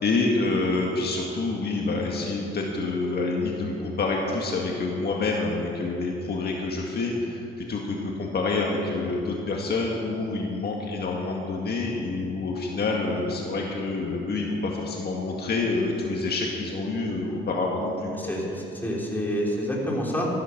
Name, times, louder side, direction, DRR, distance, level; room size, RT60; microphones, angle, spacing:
voice 1, 0.0-18.3, left 3 dB, 55° left, -1 dB, 1.8 m, -27 dB
voice 2, 18.1-20.3, equal, 10° left, -3 dB, 3.7 m, -28 dB
13.5 x 12.0 x 5.9 m, 2.8 s
cardioid pair, 90°, 20 cm